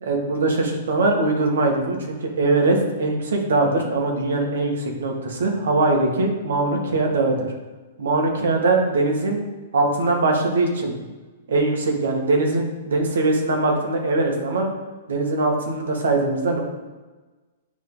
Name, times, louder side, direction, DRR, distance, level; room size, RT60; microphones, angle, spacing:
voice 1, 0.1-7.5 8.0-9.4 9.7-10.9 11.5-14.7 15.1-16.6, right 2 dB, 80° right, 1 dB, 1.9 m, -21 dB
10.0 x 3.8 x 3.9 m, 1.3 s
hypercardioid pair, 140°, 0 cm